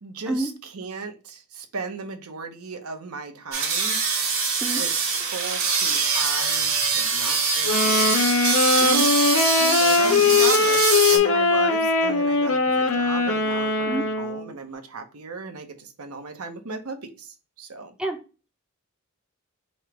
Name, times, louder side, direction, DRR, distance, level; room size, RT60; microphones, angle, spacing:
voice 1, 0.0-4.0 4.7-4.9 5.3-8.3 9.8-17.9, right 4 dB, 80° right, 0.8 m, -36 dB
sound 1, 3.5-11.2, right 5 dB, 60° right, 1.3 m, -23 dB
Wind instrument woodwind instrument, 7.6-14.5, left 4 dB, 70° left, 0.7 m, -21 dB
voice 2, 9.6-10.2 13.9-14.0 18.0-18.2, right 2 dB, 5° right, 0.6 m, -29 dB
3.2 x 2.9 x 4.6 m
head